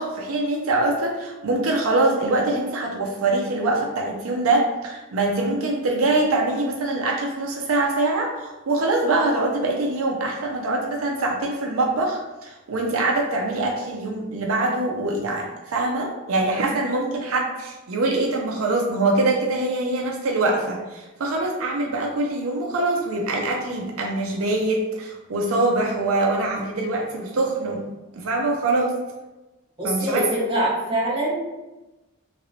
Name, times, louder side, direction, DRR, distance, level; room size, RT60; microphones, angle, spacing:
voice 1, 0.0-27.8 28.1-28.9 29.8-30.2, right 2 dB, 85° right, 0 dB, 0.5 m, -24 dB
voice 2, 29.8-31.4, right 1 dB, 25° right, -6 dB, 1.2 m, -24 dB
3.0 x 2.9 x 2.7 m, 1.1 s
head